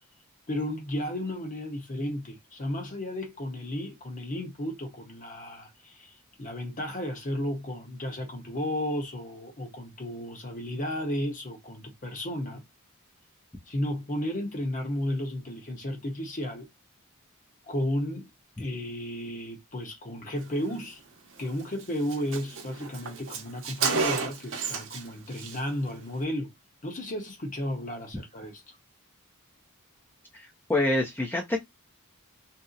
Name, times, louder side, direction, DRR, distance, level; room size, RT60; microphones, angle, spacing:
voice 1, 0.5-6.1 6.4-12.6 13.7-16.7 17.7-18.3 18.6-21.0 21.4-26.5 26.8-28.6, left 1 dB, 35° left, 0.8 m, -33 dB
Car, 21.4-21.5 21.8-21.9 22.1-25.1 25.3-25.6, right 5 dB, 60° right, 0.8 m, -31 dB
voice 2, 30.3-31.6, left 2 dB, 10° left, 0.5 m, -27 dB
2.7 x 2.0 x 3.8 m
head